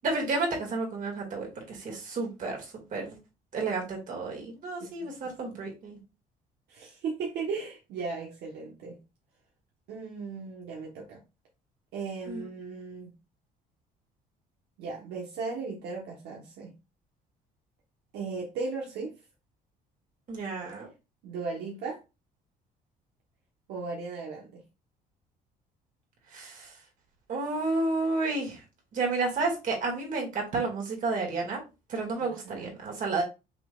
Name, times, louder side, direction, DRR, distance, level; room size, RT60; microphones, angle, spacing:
voice 1, 0.0-3.2 3.5-6.0 12.3-12.4 20.3-20.9 26.3-26.7 27.3-28.6 28.9-31.6 31.9-33.2, right 3 dB, 50° right, 2.2 m, -31 dB
voice 2, 4.8-5.6 6.7-9.0 9.9-11.2 11.9-13.1 14.8-16.7 18.1-19.1 21.2-22.0 23.7-24.6 32.2-32.8, right 4 dB, 80° right, 1.2 m, -37 dB
5.7 x 3.6 x 2.4 m
cardioid pair, 110°, 17 cm